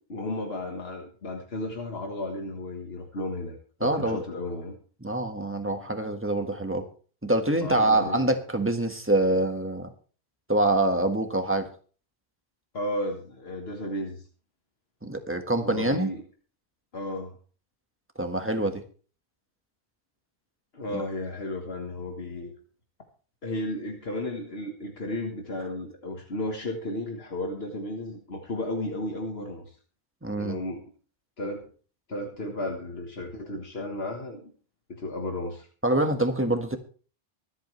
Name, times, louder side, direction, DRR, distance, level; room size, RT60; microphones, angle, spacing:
voice 1, 0.1-4.8 7.6-8.3 12.7-14.2 15.6-16.2 16.9-17.4 20.7-22.5 23.4-29.8 30.4-30.8 31.4-31.7 32.1-34.5 34.9-35.7, left 1 dB, 70° left, 2 dB, 1.8 m, -33 dB
voice 2, 3.8-4.2 5.0-6.8 7.2-9.9 10.5-11.7 15.0-16.1 18.2-18.8 20.9-21.0 30.2-30.6 35.8-36.8, right 1 dB, 10° right, 5 dB, 1.5 m, -25 dB
24.5 x 8.3 x 3.2 m, 0.40 s
omnidirectional pair, 1.1 m